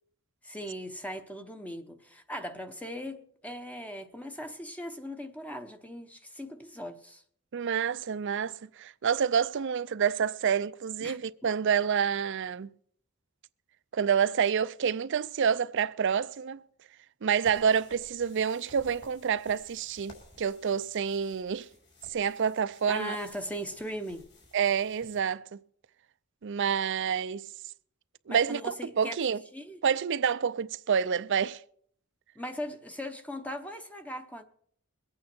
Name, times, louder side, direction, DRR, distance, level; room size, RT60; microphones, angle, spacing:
voice 1, 0.4-7.2 11.0-11.2 22.9-24.3 28.3-29.2 29.5-29.8 32.4-34.4, equal, 5° left, 0.8 m, -39 dB
voice 2, 7.5-12.7 13.9-16.6 17.2-21.7 22.1-23.2 24.5-25.5 26.4-27.5 28.3-29.4 29.8-31.6, right 7 dB, 55° right, 0.4 m, -28 dB
sound 1, 17.4-25.2, left 2 dB, 50° left, 3.8 m, -56 dB
22.5 x 8.7 x 4.4 m
head